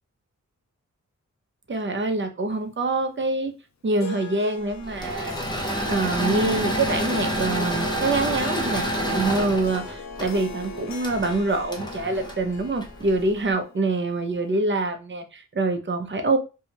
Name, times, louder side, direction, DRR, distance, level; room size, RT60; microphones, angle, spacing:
voice 1, 1.7-3.5 3.8-5.4 5.9-16.4, right 2 dB, 40° right, 6 dB, 0.6 m, -25 dB
Harp, 4.0-14.6, left 3 dB, 60° left, 0.5 m, -40 dB
Engine / Mechanisms, 4.8-13.2, equal, 15° left, 0.6 m, -28 dB
2.7 x 2.3 x 2.9 m, 0.30 s
wide cardioid pair, 100°, 31 cm